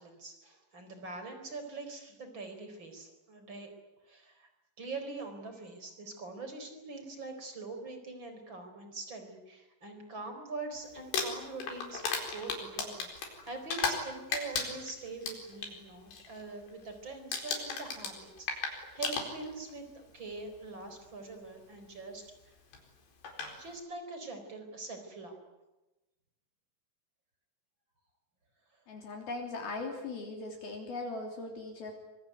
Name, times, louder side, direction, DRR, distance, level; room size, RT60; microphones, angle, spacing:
voice 1, 0.0-3.7 4.0-4.5 4.8-22.6 23.6-25.5, right 3 dB, 25° right, 6 dB, 4.7 m, -43 dB
Crumpling crinkling, 11.0-14.1 14.3-15.7 16.1-16.4 16.7-17.0 17.3-19.7 20.6-20.7 22.7-22.8 23.2-23.5, left 4 dB, 80° left, 6.5 m, -35 dB
voice 2, 28.9-31.9, left 3 dB, 60° left, 2 dB, 4.9 m, -39 dB
25.0 x 24.0 x 9.4 m, 1.0 s
omnidirectional pair, 4.9 m